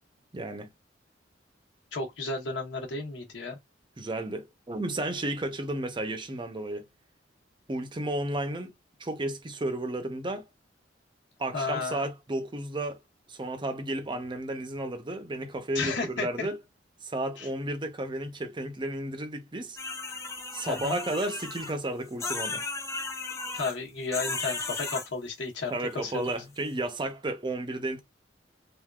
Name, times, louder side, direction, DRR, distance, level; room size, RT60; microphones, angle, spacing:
voice 1, 0.3-0.7 4.0-6.8 7.7-8.7 9.0-10.4 11.4-13.0 13.3-16.6 17.0-19.8 20.5-22.6 25.7-28.0, right 1 dB, 25° right, 0.6 m, -33 dB
voice 2, 1.9-3.6 11.5-12.1 15.7-16.5 17.4-17.5 20.7-21.0 23.5-26.4, left 3 dB, 75° left, 1.1 m, -33 dB
sound 1, 19.8-21.7 22.2-23.8 24.1-25.1, left 3 dB, 15° left, 0.5 m, -35 dB
3.5 x 2.5 x 2.3 m
head